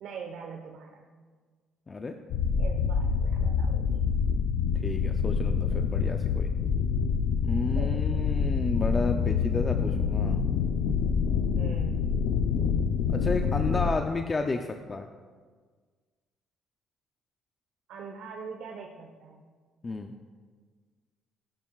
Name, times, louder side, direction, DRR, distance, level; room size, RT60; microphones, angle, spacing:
voice 1, 0.0-1.1 2.6-4.0 5.7-5.8 7.7-8.2 11.6-12.1 14.1-14.2 17.9-19.5, right 5 dB, 70° right, 1 dB, 1.0 m, -43 dB
sound 1, 2.3-13.9, left 6 dB, 90° left, 0.6 m, -26 dB
voice 2, 4.8-6.5 7.4-10.5 13.1-15.1 19.8-20.1, left 3 dB, 25° left, 5 dB, 0.5 m, -32 dB
17.0 x 11.5 x 2.4 m, 1.5 s
cardioid pair, 145°, 0 cm